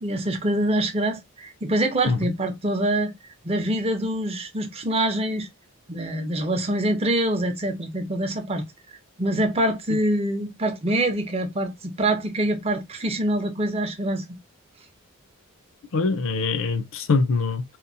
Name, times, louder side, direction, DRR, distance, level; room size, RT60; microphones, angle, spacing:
voice 1, 0.0-3.1 3.4-5.5 5.9-8.6 9.2-14.2, right 1 dB, 25° right, 0.6 m, -25 dB
voice 2, 15.9-17.6, left 4 dB, 60° left, 0.5 m, -23 dB
2.9 x 2.0 x 2.5 m
head